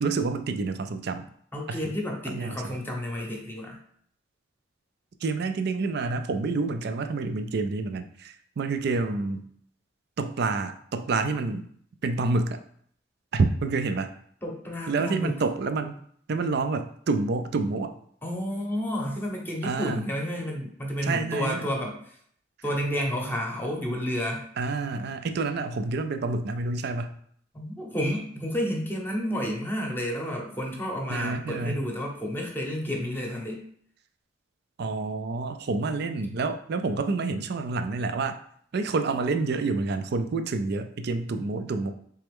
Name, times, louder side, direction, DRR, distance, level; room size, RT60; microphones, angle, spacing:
voice 1, 0.0-1.2 1.7-1.8 2.3-2.7 5.2-9.4 10.2-11.7 12.0-12.6 13.3-14.1 14.9-16.0 16.3-17.9 19.6-20.1 21.0-21.7 24.6-27.1 31.1-31.8 34.8-38.4 38.7-41.9, right 3 dB, 60° right, 8 dB, 0.4 m, -28 dB
voice 2, 1.5-3.8 14.4-15.4 18.2-22.2 22.6-24.5 27.5-33.6, equal, 10° left, 0 dB, 0.8 m, -31 dB
4.1 x 3.4 x 3.5 m, 0.63 s
head